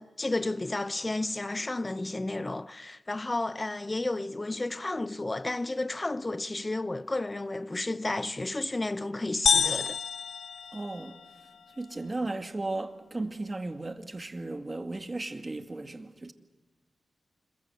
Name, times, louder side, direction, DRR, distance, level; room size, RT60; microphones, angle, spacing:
voice 1, 0.0-10.0, left 2 dB, 25° left, 0.8 m, -32 dB
sound 1, 9.5-11.4, left 6 dB, 80° left, 0.8 m, -28 dB
voice 2, 10.7-11.2 11.8-16.3, right 2 dB, 30° right, 2.3 m, -35 dB
26.5 x 22.5 x 7.9 m
cardioid pair, 60°, 0 cm